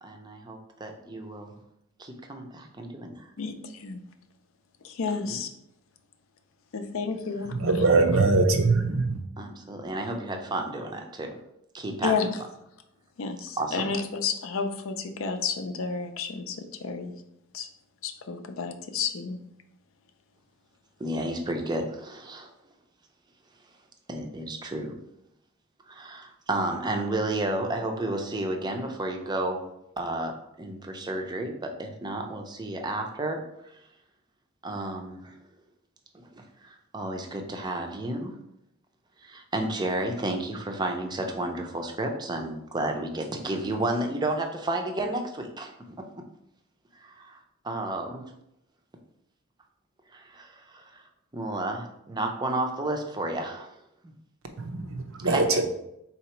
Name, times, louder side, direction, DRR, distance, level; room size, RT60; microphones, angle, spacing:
voice 1, 0.0-1.5 2.0-3.3 5.3-5.4 9.4-11.4 11.7-12.2 13.6-13.9 21.0-22.5 24.1-25.0 25.9-29.7 30.0-33.8 34.6-35.4 36.1-38.3 39.2-46.0 47.0-47.4 47.6-48.2 50.1-51.0 51.3-53.8 54.0-54.1 55.2-55.7, right 1 dB, 20° right, 4 dB, 0.5 m, -32 dB
voice 2, 5.0-5.5 6.7-7.7 12.0-12.3 13.2-16.6 16.8-17.1 17.5-17.7 18.0-19.4, left 5 dB, 65° left, 8 dB, 0.5 m, -31 dB
voice 3, 7.6-9.2 54.6-55.4, right 3 dB, 65° right, 5 dB, 0.6 m, -22 dB
3.9 x 2.9 x 4.4 m, 0.81 s
head